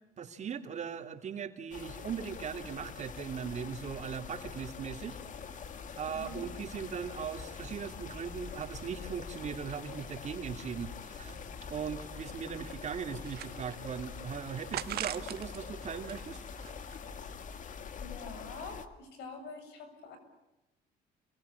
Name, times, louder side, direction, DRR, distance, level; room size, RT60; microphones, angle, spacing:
voice 1, 0.2-5.2 5.5-5.6 6.0-11.4 11.7-16.4, right 7 dB, 45° right, 6 dB, 3.2 m, -39 dB
sound 1, 1.7-18.9, left 6 dB, 50° left, 2.3 m, -45 dB
sound 2, 5.1-17.5, left 1 dB, 20° left, 2.7 m, -53 dB
voice 2, 6.1-6.4 18.0-20.2, left 4 dB, 80° left, 8 dB, 7.5 m, -46 dB
sound 3, 13.1-14.0 14.7-15.6 16.0-17.2, right 13 dB, 70° right, 1.5 m, -41 dB
29.0 x 23.5 x 8.6 m, 0.99 s
cardioid pair, 110°, 17 cm